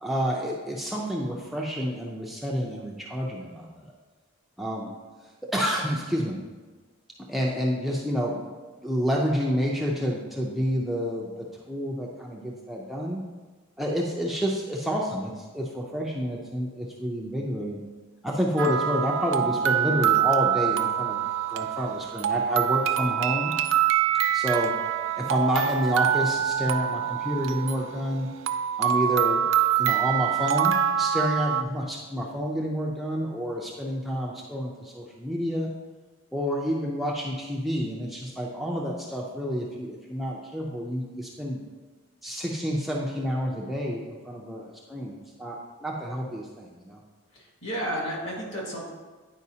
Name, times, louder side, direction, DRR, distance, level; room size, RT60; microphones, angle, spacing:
voice 1, 0.0-3.9 4.6-4.9 5.5-6.4 7.3-8.4 8.8-13.2 13.8-17.8 18.2-21.2 21.5-23.5 24.3-24.7 25.2-28.3 28.8-29.5 29.8-35.7 36.3-41.6 42.2-47.0, equal, ahead, -3 dB, 0.5 m, -29 dB
sound 1, 18.6-31.6, right 9 dB, 65° right, 0.4 m, -25 dB
voice 2, 47.3-48.9, equal, 60° left, -3 dB, 1.9 m, -32 dB
9.5 x 4.8 x 2.8 m, 1.3 s
head